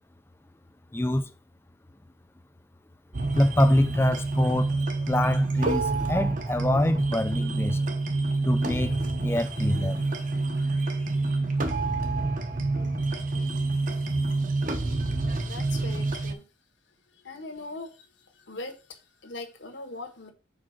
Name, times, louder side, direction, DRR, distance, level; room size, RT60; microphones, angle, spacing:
voice 1, 0.9-1.3 3.3-4.7 5.1-7.8 8.4-10.0, left 1 dB, 10° left, 0.3 m, -25 dB
sound 1, 3.1-16.3, right 3 dB, 40° right, 0.8 m, -27 dB
voice 2, 15.4-16.4 17.2-18.1 18.4-20.3, left 2 dB, 65° left, 1.4 m, -40 dB
4.9 x 4.7 x 5.8 m
head